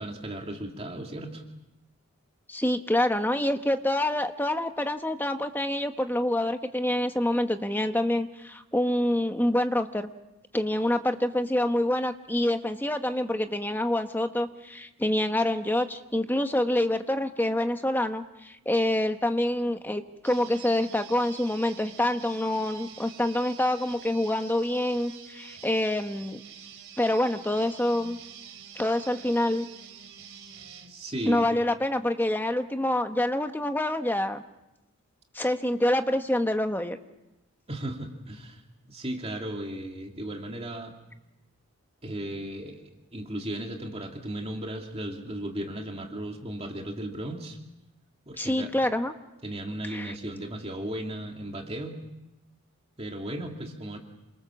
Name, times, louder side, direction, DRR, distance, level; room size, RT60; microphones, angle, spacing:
voice 1, 0.0-1.4 30.9-31.5 37.7-38.6 38.9-41.0 42.0-47.6 48.3-48.7 49.4-52.0 53.0-54.0, right 1 dB, 25° right, 2 dB, 2.6 m, -36 dB
voice 2, 2.5-10.1 10.5-26.4 27.0-28.2 28.7-29.7 31.2-34.4 35.3-37.0 48.4-49.1 49.9-50.1, left 1 dB, 10° left, 7 dB, 1.2 m, -26 dB
sound 1, 20.2-30.9, right 8 dB, 65° right, 3.7 m, -47 dB
28.0 x 24.5 x 7.2 m, 0.96 s
head